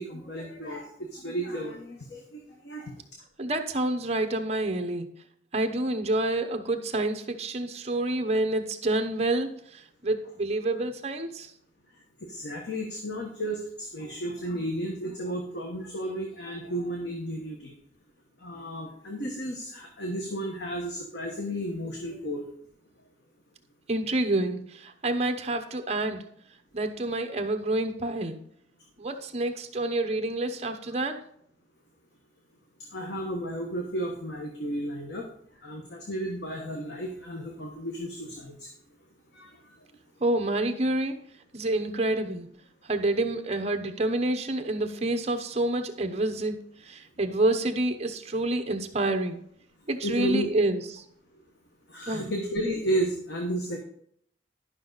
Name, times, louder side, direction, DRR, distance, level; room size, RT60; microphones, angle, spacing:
voice 1, 0.0-2.9 12.3-17.7 18.4-22.4 32.9-35.3 35.6-38.7 39.3-39.6 50.0-50.5 51.9-53.8, right 1 dB, 70° left, 1 dB, 1.3 m, -33 dB
voice 2, 3.4-5.1 5.5-11.5 23.9-26.2 26.7-28.4 29.0-31.2 40.2-41.2 41.5-42.5 42.8-49.4 49.9-51.0 52.1-52.3, right 2 dB, 35° right, 7 dB, 0.9 m, -28 dB
11.5 x 5.8 x 4.0 m, 0.68 s
head